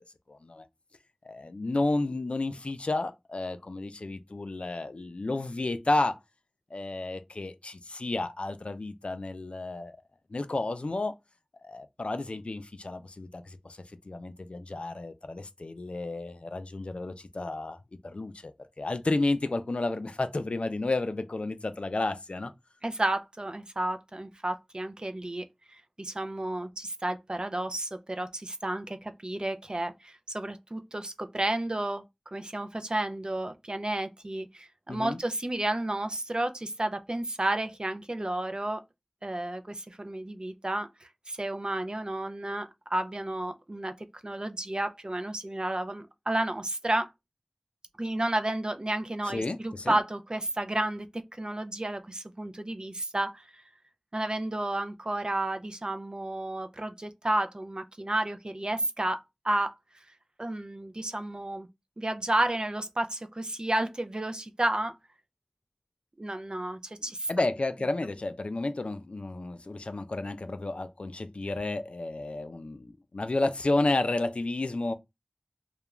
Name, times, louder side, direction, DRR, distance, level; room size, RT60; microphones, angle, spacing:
voice 1, 0.3-0.7 1.2-6.2 6.7-10.0 10.3-11.1 11.6-17.8 18.0-22.5 34.9-35.2 49.3-50.0 67.3-74.9, left 2 dB, 75° left, 0.3 m, -31 dB
voice 2, 22.8-25.4 25.7-32.0 32.3-38.8 39.2-43.9 44.2-47.1 48.0-51.1 51.3-53.4 54.1-59.2 59.4-59.7 60.4-61.7 62.0-64.9 66.2-67.3, right 1 dB, 45° right, 0.4 m, -31 dB
2.4 x 2.1 x 3.0 m
wide cardioid pair, 40°, 2 cm